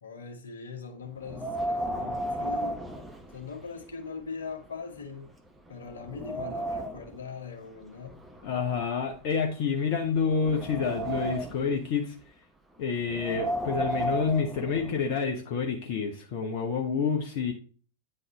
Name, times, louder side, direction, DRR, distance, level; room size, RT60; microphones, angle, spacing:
voice 1, 0.0-2.8 3.3-5.3 5.7-8.2, left 5 dB, 70° left, 1.3 m, -41 dB
Wind, 1.2-3.8 4.2-4.3 5.0-5.1 5.6-7.2 8.0-9.6 10.1-11.7 13.0-15.1, right 1 dB, 10° right, 0.9 m, -34 dB
voice 2, 8.4-12.1 12.8-17.5, left 6 dB, 45° left, 0.9 m, -28 dB
9.2 x 4.0 x 3.9 m
figure-of-eight pair, 90°, 0 cm